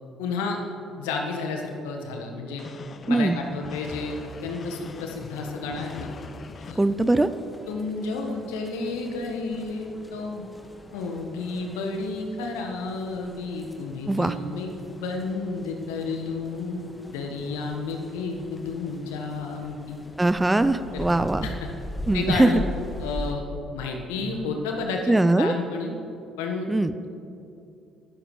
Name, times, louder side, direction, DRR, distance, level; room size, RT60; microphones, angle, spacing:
voice 1, 0.2-0.6 1.0-2.6 3.1-6.1 6.6-6.8 7.7-10.4 10.9-14.7 15.0-16.8 17.1-20.0 20.9-21.1 21.4-21.7 22.1-22.6 23.0-23.4 23.7-25.9 26.4-26.7, left 3 dB, 75° left, 2 dB, 1.5 m, -31 dB
sound 1, 2.6-6.7, left 5 dB, 45° left, 0.7 m, -41 dB
sound 2, 3.8-23.3, left 1 dB, 15° left, 1.8 m, -42 dB
voice 2, 6.8-7.3 14.1-14.3 20.2-21.5 22.1-22.6 25.1-25.5 26.7-26.9, right 2 dB, 15° right, 12 dB, 0.6 m, -21 dB
23.0 x 12.5 x 3.3 m, 2.8 s
figure-of-eight pair, 50°, 0 cm